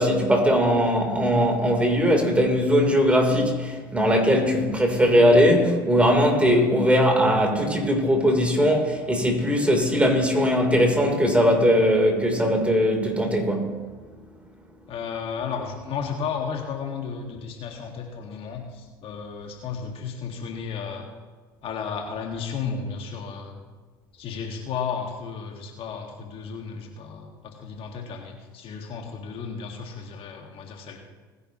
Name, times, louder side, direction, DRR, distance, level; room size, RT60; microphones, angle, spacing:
voice 1, 0.0-13.8, equal, 10° right, 3.7 m, -20 dB
voice 2, 14.9-21.1 21.6-23.6 24.1-31.0, left 6 dB, 50° left, 2.0 m, -33 dB
20.0 x 10.5 x 3.1 m
hypercardioid pair, 75°, 12 cm